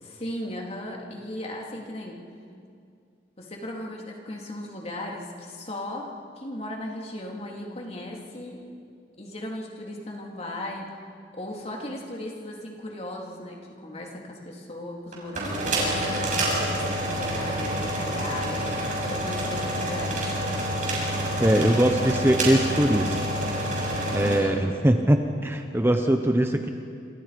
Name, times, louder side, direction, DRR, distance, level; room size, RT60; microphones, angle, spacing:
voice 1, 0.0-2.2 3.4-8.7 9.2-11.0 11.3-20.3 24.0-24.7, left 1 dB, 35° left, -1 dB, 3.5 m, -37 dB
sound 1, 15.1-24.4, right 1 dB, 45° right, 6.6 m, -27 dB
voice 2, 21.4-23.2 24.1-26.7, right 1 dB, 15° right, 5 dB, 1.0 m, -21 dB
27.5 x 26.5 x 5.3 m, 2.4 s
head